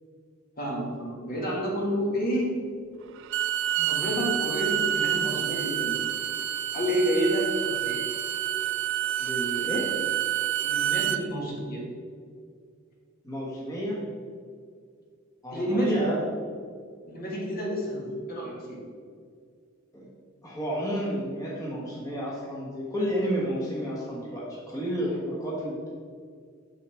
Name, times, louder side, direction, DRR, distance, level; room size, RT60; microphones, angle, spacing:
voice 1, 0.6-2.5 3.8-6.0 6.7-7.5 7.8-8.0 10.6-11.9 15.5-16.0 17.1-18.8, equal, 45° left, -3 dB, 1.6 m, -29 dB
Bowed string instrument, 3.2-11.2, right 11 dB, 60° right, 0.3 m, -28 dB
voice 2, 9.2-9.9 13.2-14.0 15.4-16.1 19.9-20.0 20.4-25.9, equal, 15° left, -6 dB, 1.3 m, -31 dB
6.7 x 6.5 x 3.4 m, 2.1 s
head